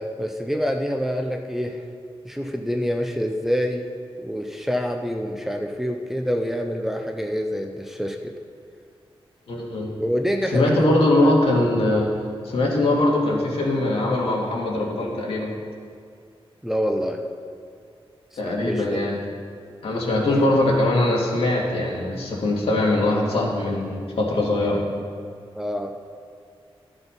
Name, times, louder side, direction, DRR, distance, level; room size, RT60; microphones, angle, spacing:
voice 1, 0.0-1.8 2.2-3.9 4.2-8.3 10.0-11.4 16.6-17.2 18.3-19.0 20.1-20.5 25.6-25.9, equal, 5° right, 3 dB, 0.5 m, -27 dB
voice 2, 9.5-10.0 10.5-12.1 12.4-15.5 18.4-19.2 19.8-24.8, left 1 dB, 75° left, -3 dB, 2.1 m, -21 dB
13.0 x 6.1 x 5.3 m, 2.2 s
wide cardioid pair, 175°, 10 cm